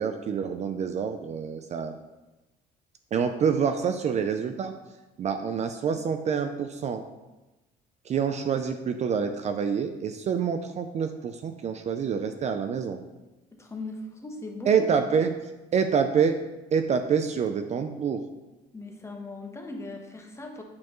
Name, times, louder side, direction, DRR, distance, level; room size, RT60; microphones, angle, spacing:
voice 1, 0.0-1.9 3.1-4.7 5.2-7.0 8.1-13.0 14.7-15.3 15.7-16.4 16.7-18.2, right 6 dB, 40° right, 7 dB, 0.4 m, -26 dB
voice 2, 13.6-14.9 18.7-20.6, left 2 dB, 15° left, 2 dB, 1.0 m, -39 dB
8.4 x 4.5 x 3.1 m, 1.1 s
cardioid pair, 110°, 17 cm